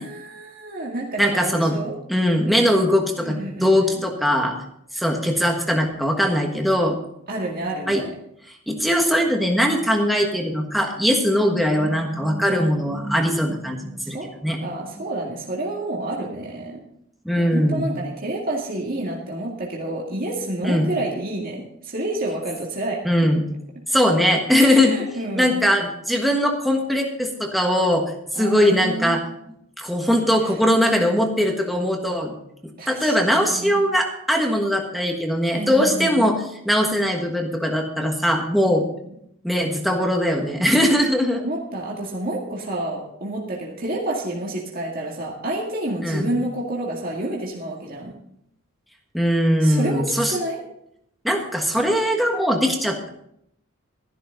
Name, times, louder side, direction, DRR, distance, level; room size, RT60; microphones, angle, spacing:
voice 1, 0.0-2.0 3.2-4.0 7.3-8.1 14.0-14.3 14.6-16.8 17.3-23.0 24.5-25.7 28.3-29.2 30.4-30.6 32.8-33.2 33.5-33.8 35.5-36.2 41.3-48.2 49.6-50.6, right 1 dB, 45° right, -2 dB, 2.0 m, -29 dB
voice 2, 1.2-1.7 2.1-4.6 4.9-7.0 7.9-8.0 8.7-14.2 14.4-14.6 17.2-17.9 20.6-20.9 23.0-23.4 23.9-25.0 25.4-28.0 28.3-29.2 29.8-32.3 32.9-38.8 39.4-41.4 46.0-46.3 49.1-50.4 51.2-53.1, equal, ahead, 1 dB, 1.3 m, -20 dB
13.0 x 11.5 x 3.9 m, 0.74 s
head